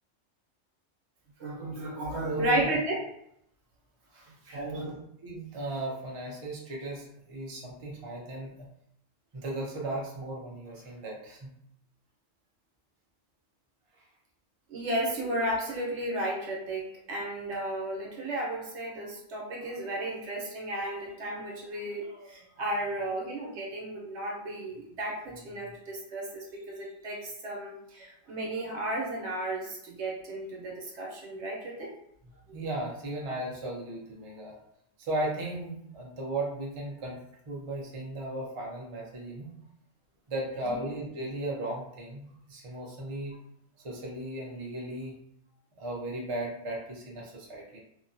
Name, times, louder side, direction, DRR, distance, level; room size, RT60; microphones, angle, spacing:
voice 1, 1.4-3.0 4.5-4.9 14.7-31.9, right 1 dB, 65° right, -3 dB, 1.0 m, -33 dB
voice 2, 2.2-2.7 4.1-5.0 5.2-8.7 9.3-11.5 13.9-14.0 32.5-34.6 35.0-37.2 37.5-39.5 40.3-43.3 43.8-45.2 45.8-47.8, right 1 dB, 40° right, -2 dB, 0.4 m, -36 dB
2.8 x 2.2 x 2.6 m, 0.73 s
omnidirectional pair, 1.3 m